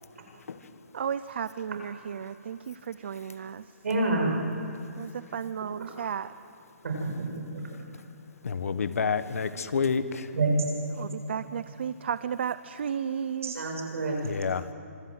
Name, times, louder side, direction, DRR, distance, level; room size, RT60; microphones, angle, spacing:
voice 1, 0.9-3.7 5.0-6.3 11.0-13.5, right 8 dB, 50° right, 14 dB, 0.5 m, -34 dB
voice 2, 3.8-4.3 5.8-5.9 6.8-7.3 7.5-7.6 10.3-10.5 11.4-11.5 13.4-14.3, right 3 dB, 70° right, 1 dB, 7.6 m, -28 dB
voice 3, 8.4-10.3 14.2-14.6, left 5 dB, 80° left, 12 dB, 1.5 m, -28 dB
26.0 x 23.5 x 8.1 m, 2.5 s
hypercardioid pair, 175°, 8 cm